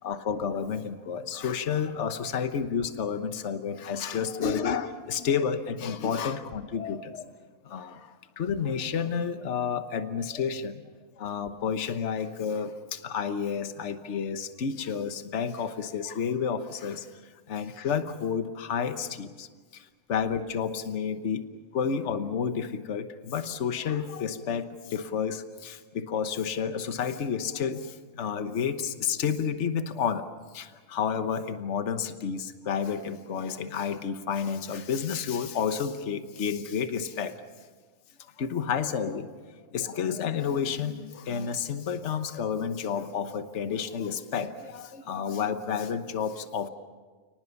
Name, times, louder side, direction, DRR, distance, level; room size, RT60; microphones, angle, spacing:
voice 1, 0.0-7.3 7.6-10.8 11.2-17.1 17.5-21.4 21.7-37.4 38.4-39.3 39.7-46.7, left 7 dB, 55° left, 10 dB, 1.4 m, -30 dB
29.5 x 19.0 x 7.1 m, 1.4 s
omnidirectional pair, 1.5 m